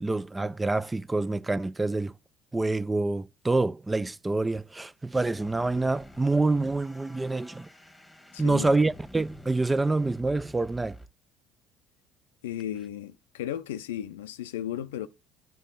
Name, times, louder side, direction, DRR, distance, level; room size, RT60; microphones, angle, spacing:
voice 1, 0.0-2.1 2.5-7.7 8.4-11.0, right 2 dB, 15° right, 0.3 m, -27 dB
sound 1, 5.1-11.1, left 1 dB, 5° left, 1.3 m, -48 dB
voice 2, 8.3-8.8 12.4-15.1, left 11 dB, 80° left, 0.5 m, -35 dB
9.1 x 3.5 x 3.8 m
hypercardioid pair, 60°, 0 cm